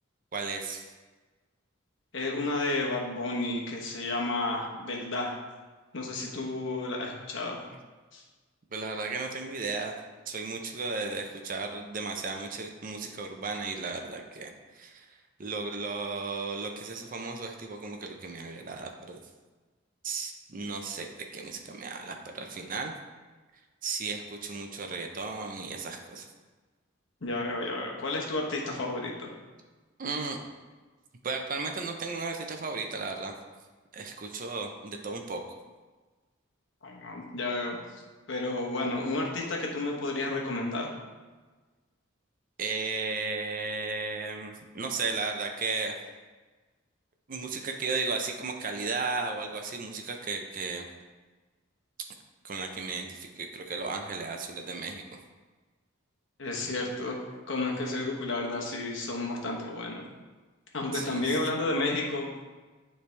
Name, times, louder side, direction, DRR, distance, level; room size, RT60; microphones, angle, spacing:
voice 1, 0.3-0.9 8.7-10.0 10.3-19.2 20.0-21.1 21.3-22.9 23.8-26.3 30.0-30.4 31.2-33.3 33.9-35.6 42.6-46.0 47.3-50.8 52.4-55.2 60.9-61.4, right 4 dB, 40° right, 4 dB, 0.6 m, -35 dB
voice 2, 2.1-5.4 5.9-7.6 8.1-8.2 27.2-29.3 36.8-37.8 38.3-40.9 56.4-57.2 57.5-60.0 60.7-62.3, left 2 dB, 65° left, -1 dB, 1.0 m, -31 dB
9.3 x 3.4 x 3.3 m, 1.3 s
head